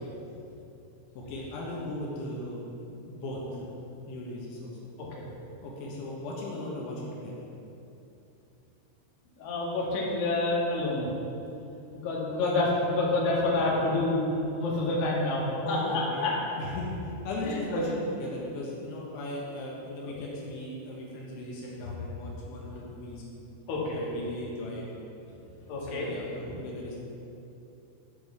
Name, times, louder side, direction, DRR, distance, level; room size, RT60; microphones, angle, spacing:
voice 1, 1.2-2.6 3.1-3.6 4.1-4.7 5.6-7.3 12.4-12.6 15.6-16.3 16.6-23.2 23.9-24.8 25.8-27.0, left 1 dB, 80° left, -4 dB, 3.8 m, -37 dB
voice 2, 9.4-11.1 11.9-16.6 17.4-17.8 20.0-20.2 22.7-22.8 23.7-24.0 25.7-26.1, left 2 dB, 55° left, -5 dB, 3.4 m, -28 dB
13.0 x 5.5 x 6.9 m, 2.8 s
omnidirectional pair, 5.4 m